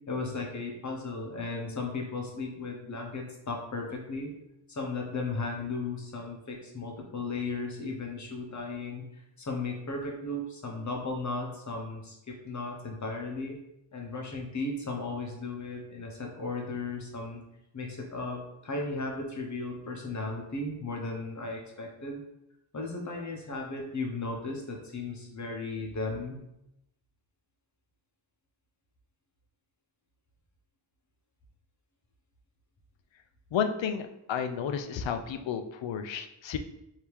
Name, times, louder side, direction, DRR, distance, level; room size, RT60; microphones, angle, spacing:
voice 1, 0.1-4.3 4.7-9.1 9.4-13.6 13.9-17.4 17.7-22.2 22.7-26.4, left 3 dB, 40° left, 1 dB, 0.9 m, -35 dB
voice 2, 33.5-36.6, left 7 dB, 75° left, 7 dB, 0.5 m, -32 dB
3.4 x 2.8 x 4.6 m, 0.85 s
wide cardioid pair, 145°, 46 cm